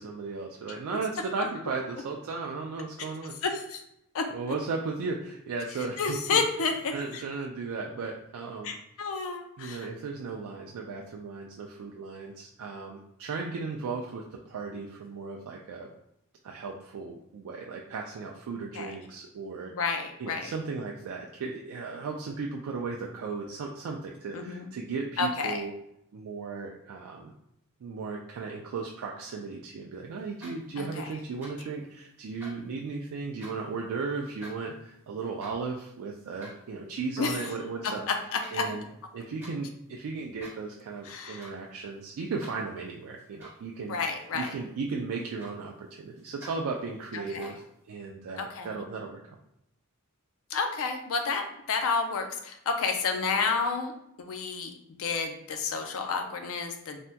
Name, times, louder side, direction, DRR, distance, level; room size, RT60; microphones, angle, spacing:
voice 1, 0.0-3.3 4.3-6.4 6.9-8.7 9.6-15.9 16.4-19.7 20.2-25.7 26.1-27.3 27.8-38.1 38.5-38.8 39.1-44.0 44.3-49.4, right 4 dB, 65° right, 0 dB, 0.3 m, -36 dB
voice 2, 3.4-3.8 4.1-4.3 6.0-7.2 8.6-9.9 18.7-18.9 19.7-20.5 24.3-24.7 25.2-25.6 30.8-31.1 37.2-37.4 37.8-38.7 41.0-41.5 43.9-44.5 47.1-47.5 48.4-48.8 50.5-53.9 54.2-54.7 55.0-57.0, left 4 dB, 65° left, 5 dB, 0.4 m, -30 dB
sound 1, 30.2-30.9 31.2-31.8 32.1-33.7 34.2-37.6 38.0-38.6 38.9-39.6 40.2-40.8 41.0-41.6 41.9-43.7 44.2-44.7 45.0-45.8 46.2-46.6 47.2-47.7, equal, 10° right, 1.1 m, -50 dB
3.3 x 2.1 x 2.7 m, 0.79 s
head